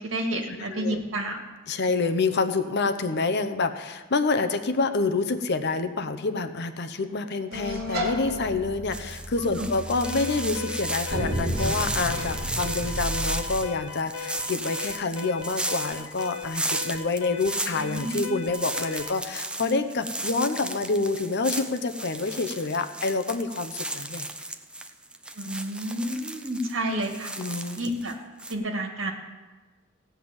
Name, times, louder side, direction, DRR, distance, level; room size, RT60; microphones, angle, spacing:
voice 1, 0.0-1.4 9.6-9.7 17.7-18.3 25.4-27.3 27.8-28.1 28.5-29.1, right 1 dB, 80° right, 3 dB, 1.9 m, -30 dB
voice 2, 1.7-24.3 27.4-27.8, left 3 dB, 60° left, 9 dB, 0.8 m, -27 dB
sound 1, 7.5-13.7, equal, 55° right, 2.6 m, -32 dB
sound 2, 8.9-28.1 28.4-28.5, right 1 dB, 5° right, 0.7 m, -34 dB
Alarm, 10.0-19.2, left 6 dB, 90° left, 0.9 m, -38 dB
16.5 x 5.8 x 8.9 m, 1.3 s
head